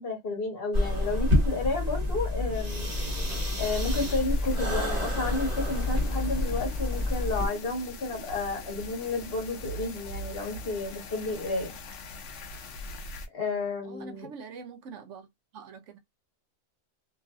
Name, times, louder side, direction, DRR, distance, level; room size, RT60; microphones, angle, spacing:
voice 1, 0.0-2.9 3.6-11.7 13.3-14.3, left 3 dB, 50° left, 1.3 m, -32 dB
sound 1, 0.7-7.5, left 1 dB, 35° right, 1.1 m, -28 dB
sound 2, 3.6-13.3, left 2 dB, 70° left, 1.0 m, -42 dB
voice 2, 13.8-15.3 15.5-16.0, right 5 dB, 75° right, 1.0 m, -44 dB
3.0 x 2.6 x 2.3 m
omnidirectional pair, 1.3 m